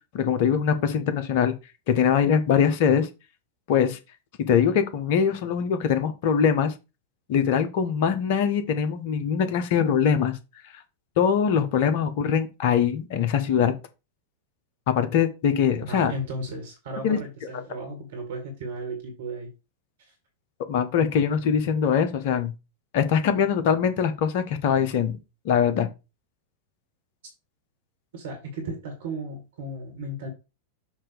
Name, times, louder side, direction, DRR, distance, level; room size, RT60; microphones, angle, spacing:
voice 1, 0.1-1.5 1.9-3.1 3.7-4.0 4.5-6.7 7.3-10.4 11.2-13.7 14.9-16.1 17.0-17.2 20.7-22.5 22.9-25.2 25.4-25.9, left 7 dB, 50° left, 1.1 m, -22 dB
voice 2, 15.9-19.5 20.0-20.1 28.1-30.3, right 1 dB, 60° right, 2.0 m, -35 dB
7.3 x 2.9 x 5.0 m
figure-of-eight pair, 90°, 0 cm